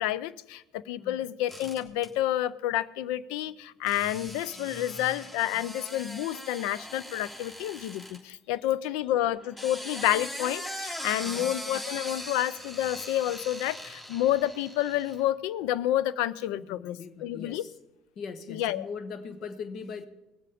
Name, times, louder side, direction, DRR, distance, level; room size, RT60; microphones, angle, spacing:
voice 1, 0.0-17.6 18.5-18.9, left 13 dB, 75° left, 0.5 m, -29 dB
sound 1, 1.5-2.1 3.9-8.2 9.4-15.2, equal, 25° left, 3.4 m, -40 dB
voice 2, 16.5-17.7 18.1-20.1, left 5 dB, 55° left, 1.2 m, -40 dB
19.5 x 7.6 x 5.0 m
hypercardioid pair, 75°, 0 cm